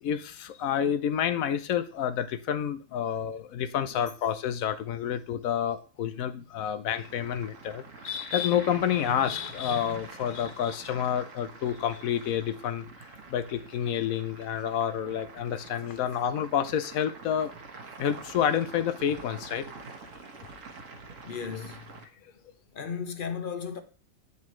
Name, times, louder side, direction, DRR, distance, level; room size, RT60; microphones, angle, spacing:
voice 1, 0.0-12.8 13.3-17.5 18.0-19.7, left 9 dB, 85° left, 1.1 m, -29 dB
voice 2, 6.1-6.7 15.9-16.0 17.9-18.0 21.2-22.0 22.7-23.8, left 6 dB, 45° left, 0.9 m, -37 dB
sound 1, 6.9-22.0, right 4 dB, 70° right, 1.5 m, -46 dB
8.3 x 6.9 x 3.1 m
omnidirectional pair, 1.4 m